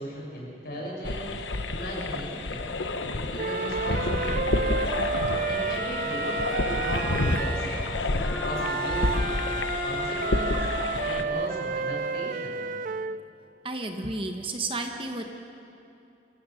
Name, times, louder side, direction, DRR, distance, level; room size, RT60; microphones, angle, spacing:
voice 1, 0.0-1.4 1.7-2.7 3.1-4.7 5.5-9.3 9.8-10.6 11.1-12.7, equal, 60° left, -3 dB, 6.1 m, -36 dB
sound 1, 1.0-11.2, left 2 dB, 90° left, 1.1 m, -29 dB
sound 2, 3.4-7.7 8.6-13.2, right 5 dB, 45° right, 0.4 m, -31 dB
sound 3, 5.1-10.7, left 1 dB, 10° left, 2.0 m, -35 dB
voice 2, 13.6-15.2, right 2 dB, 30° right, 4 dB, 1.2 m, -32 dB
26.5 x 16.5 x 6.4 m, 2.7 s
head